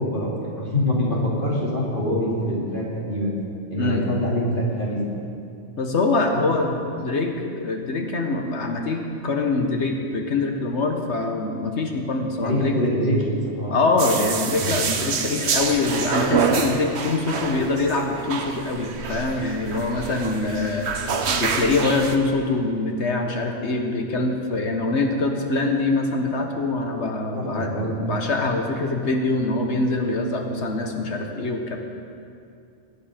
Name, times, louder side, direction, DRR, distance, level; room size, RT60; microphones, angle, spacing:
voice 1, 0.0-3.4 3.7-5.1 12.4-13.8 27.3-28.0, equal, 45° left, -4 dB, 3.0 m, -24 dB
voice 2, 5.8-12.8 13.7-21.0 21.3-27.7 28.0-31.8, left 3 dB, 65° left, 3 dB, 1.6 m, -24 dB
sound 1, 14.0-22.2, right 5 dB, 60° right, 1.2 m, -27 dB
21.5 x 8.7 x 5.1 m, 2.5 s
omnidirectional pair, 1.3 m